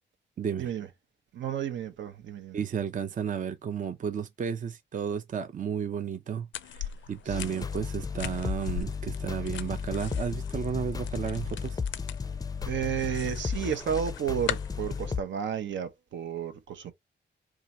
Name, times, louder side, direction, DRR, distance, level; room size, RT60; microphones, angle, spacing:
voice 1, 0.4-0.7 2.5-6.8 7.1-11.8, right 7 dB, 40° right, 0.6 m, -33 dB
voice 2, 1.3-2.6 7.3-7.7 12.7-16.9, right 8 dB, 75° right, 0.8 m, -32 dB
sound 1, 6.5-15.2, left 10 dB, 80° left, 0.4 m, -41 dB
sound 2, 7.3-15.2, left 5 dB, 20° left, 0.5 m, -34 dB
2.8 x 2.4 x 4.0 m
cardioid pair, 70°, 19 cm